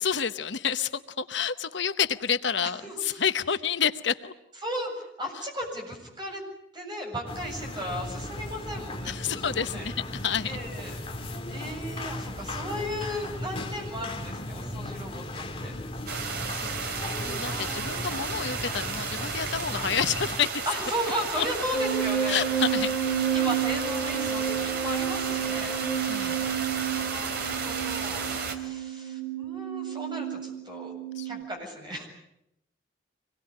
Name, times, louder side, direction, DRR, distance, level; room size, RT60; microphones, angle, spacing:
voice 1, 0.0-4.3 9.0-9.9 10.2-10.5 16.5-20.6 21.4-21.5 22.3-23.0 26.0-26.4 31.2-31.4, left 7 dB, 65° left, 11 dB, 0.9 m, -29 dB
voice 2, 2.8-3.2 4.6-6.4 6.7-9.9 10.4-11.0 11.3-15.7 17.4-18.4 20.6-22.4 23.3-25.8 26.9-30.9 31.2-32.1, equal, 25° right, 1 dB, 7.8 m, -36 dB
sound 1, 7.3-20.4, left 1 dB, 30° left, 2.0 m, -37 dB
sound 2, 16.1-28.5, right 4 dB, 55° right, 2.8 m, -33 dB
sound 3, 21.7-31.4, right 9 dB, 10° left, 2.5 m, -30 dB
25.5 x 21.5 x 9.9 m, 0.82 s
head